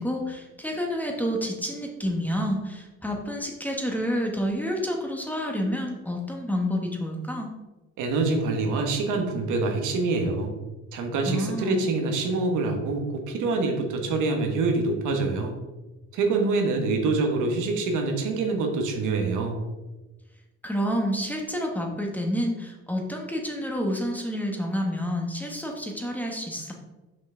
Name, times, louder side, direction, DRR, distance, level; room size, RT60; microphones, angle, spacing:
voice 1, 0.0-7.5 11.3-11.9 20.6-26.7, equal, 5° left, 1 dB, 1.4 m, -29 dB
voice 2, 8.0-10.5 10.9-15.5 16.1-19.5, right 3 dB, 85° right, 3 dB, 1.3 m, -25 dB
6.0 x 5.4 x 3.8 m, 1.1 s
cardioid pair, 90°, 30 cm